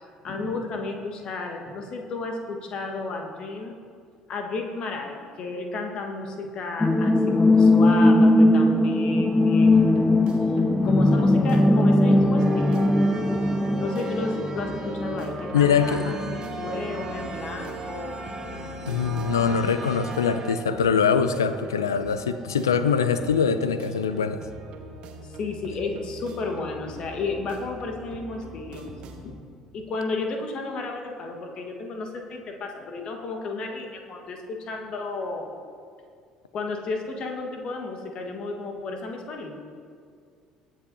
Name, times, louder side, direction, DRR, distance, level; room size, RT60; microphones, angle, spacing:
voice 1, 0.2-3.7 4.3-10.0 10.8-12.9 13.8-18.1 25.2-28.8 29.2-29.4 29.7-35.5 36.5-39.6, left 3 dB, 45° left, 3 dB, 1.5 m, -33 dB
sound 1, 6.8-16.4 16.7-16.8, left 1 dB, 15° left, 0.5 m, -20 dB
sound 2, 9.6-29.3, right 1 dB, 50° right, 1.3 m, -43 dB
sound 3, 12.4-20.6, right 2 dB, 30° right, 2.5 m, -36 dB
voice 2, 15.5-16.1 18.9-24.4, left 6 dB, 75° left, 12 dB, 0.5 m, -23 dB
22.0 x 7.6 x 2.8 m, 2.2 s
figure-of-eight pair, 55°, 2 cm